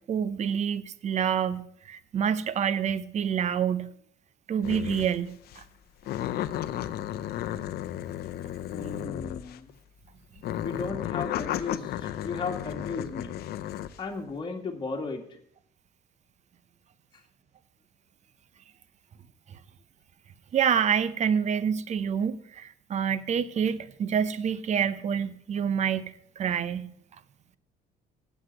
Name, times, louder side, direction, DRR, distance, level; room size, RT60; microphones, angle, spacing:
voice 1, 0.1-3.9 4.5-5.6 19.5-19.6 20.5-26.9, right 8 dB, 45° right, 0.7 m, -27 dB
sound 1, 4.6-5.2 5.5-5.7 6.0-9.7 10.4-14.0, left 12 dB, 70° left, 0.7 m, -34 dB
voice 2, 8.7-9.7 10.6-13.4 14.0-15.3, left 4 dB, 25° left, 2.0 m, -35 dB
8.1 x 8.0 x 7.6 m
cardioid pair, 110°, 17 cm